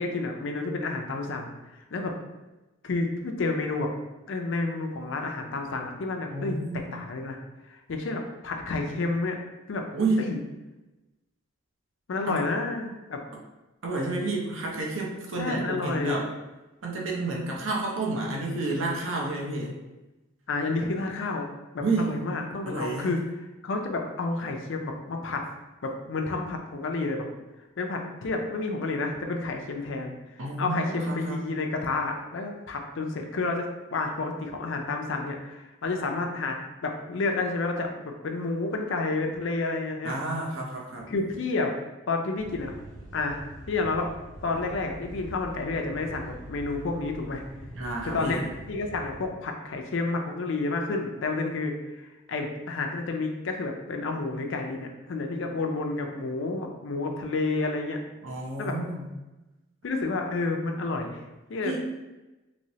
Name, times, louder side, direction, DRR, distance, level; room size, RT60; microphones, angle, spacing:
voice 1, 0.0-1.5 1.7-2.1 2.8-3.9 4.3-7.4 7.7-9.4 9.7-9.8 10.2-10.4 12.1-13.2 15.4-16.2 20.5-21.5 21.7-23.2 23.6-25.4 25.8-27.3 27.8-36.6 36.8-40.1 41.1-41.7 42.1-42.7 43.1-43.4 43.7-44.1 44.4-47.4 48.0-48.4 48.7-58.0 58.6-58.7 59.8-61.8, left 3 dB, 60° left, 3 dB, 0.4 m, -30 dB
voice 2, 6.3-6.8 9.9-10.3 12.3-12.4 13.8-16.3 16.8-19.8 21.8-22.2 22.7-23.1 30.4-31.4 40.0-41.1 47.7-48.4 58.2-59.1 61.6-61.8, right 2 dB, 65° right, -2 dB, 0.6 m, -30 dB
sound 1, 42.4-49.3, equal, 40° right, 0.9 m, -44 dB
3.0 x 3.0 x 2.7 m, 1.1 s
head